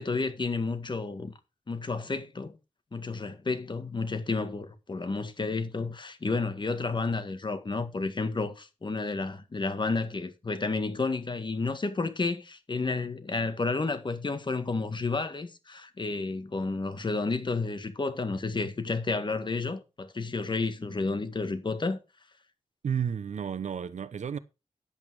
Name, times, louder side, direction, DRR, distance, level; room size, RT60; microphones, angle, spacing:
voice 1, 0.0-1.3 1.7-2.6 2.9-22.0, left 3 dB, 40° left, 1.7 m, -31 dB
voice 2, 22.8-24.4, right 7 dB, 80° right, 0.8 m, -32 dB
10.5 x 8.4 x 4.7 m
wide cardioid pair, 95°, 12 cm